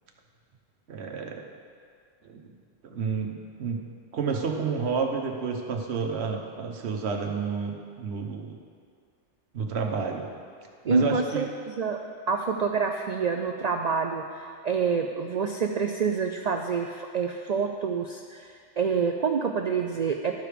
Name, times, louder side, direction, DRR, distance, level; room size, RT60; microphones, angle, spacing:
voice 1, 0.9-1.4 2.2-2.5 2.8-3.8 4.1-8.6 9.5-10.2 10.8-11.5, right 5 dB, 65° right, 2 dB, 1.1 m, -30 dB
voice 2, 10.9-12.0 12.3-20.3, right 5 dB, 80° right, 4 dB, 0.3 m, -27 dB
12.5 x 5.0 x 5.0 m, 2.1 s
omnidirectional pair, 1.3 m